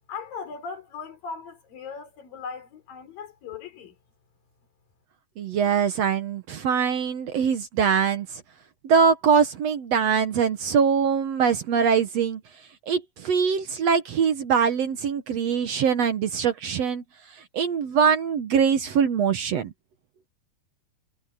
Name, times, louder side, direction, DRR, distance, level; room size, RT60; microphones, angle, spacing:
voice 1, 0.1-4.0, left 5 dB, 85° left, 5.6 m, -38 dB
voice 2, 5.4-8.3 8.8-12.4 12.9-17.0 17.5-19.7, right 6 dB, 60° right, 2.0 m, -23 dB
omnidirectional pair, 3.9 m